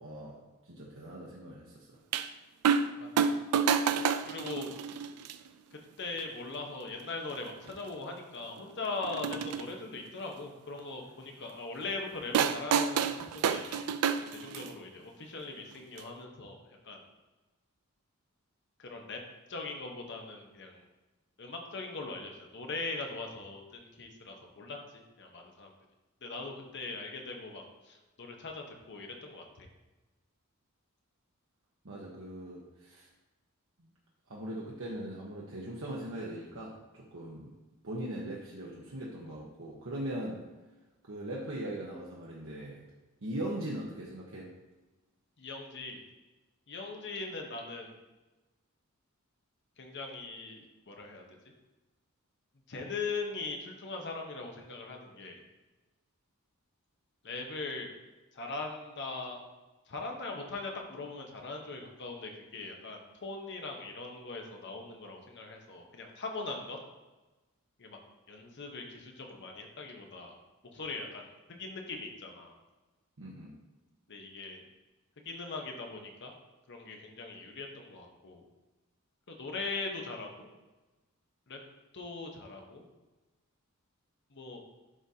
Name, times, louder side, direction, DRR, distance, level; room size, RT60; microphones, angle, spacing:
voice 1, 0.0-2.0 31.8-33.1 33.8-33.9 34.3-37.5 37.8-40.4 41.0-42.8 43.2-44.5 73.2-73.5, right 1 dB, 65° right, -4 dB, 1.0 m, -40 dB
sound 1, 2.1-2.3 2.6-2.9 3.2-5.3 6.2-6.3 7.3-7.4 7.7-7.8 9.0-9.6 12.3-14.8 16.0-16.1, right 7 dB, 90° right, 0.4 m, -29 dB
voice 2, 3.0-3.4 4.3-4.7 5.7-13.9 14.4-17.0 18.8-19.2 19.5-20.8 21.4-25.7 26.2-29.7 45.4-46.0 46.7-48.0 49.8-51.2 52.7-55.4 57.2-57.9 58.3-59.4 59.9-66.8 67.8-68.0 68.3-70.4 70.7-71.3 71.6-72.5 74.1-74.6 75.2-76.3 76.7-78.4 79.3-80.5 81.5-81.6 81.9-82.8 84.3-84.6, left 3 dB, 55° left, 2 dB, 0.9 m, -40 dB
11.0 x 3.9 x 2.8 m, 1.1 s
head